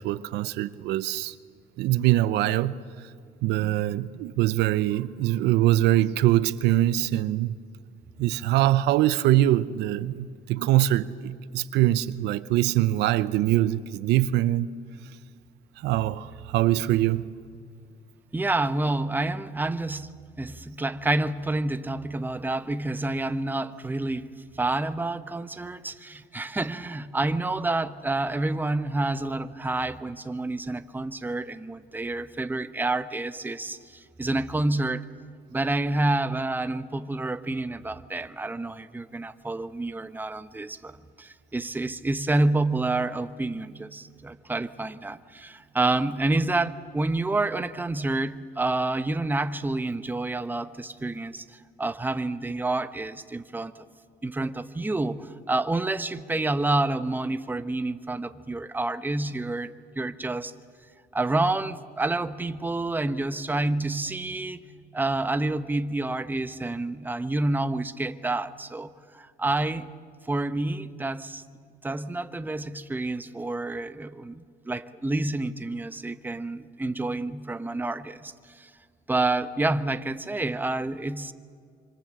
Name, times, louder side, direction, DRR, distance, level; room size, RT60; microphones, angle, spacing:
voice 1, 0.0-1.3 1.8-2.8 3.4-7.6 8.2-14.7 15.8-17.2, right 14 dB, 85° right, 0.8 m, -23 dB
voice 2, 18.3-35.1 35.5-40.9 41.2-51.4 51.8-53.7 54.2-60.5 61.1-64.6 64.9-69.9 70.3-71.4 71.8-74.4 74.7-78.7 79.1-81.3, right 2 dB, 10° right, 1.0 m, -28 dB
26.0 x 25.0 x 7.6 m
cardioid pair, 110°, 17 cm